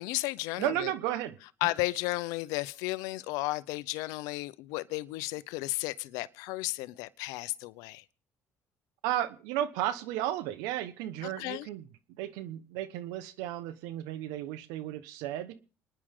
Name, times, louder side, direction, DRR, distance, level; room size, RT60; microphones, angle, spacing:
voice 1, 0.0-0.9 1.6-8.0 11.2-11.7, left 20 dB, 85° left, 0.7 m, -34 dB
voice 2, 0.6-1.4 9.0-11.8 12.2-15.6, right 12 dB, 90° right, 1.1 m, -33 dB
29.0 x 10.0 x 3.7 m
supercardioid pair, 85°, 6 cm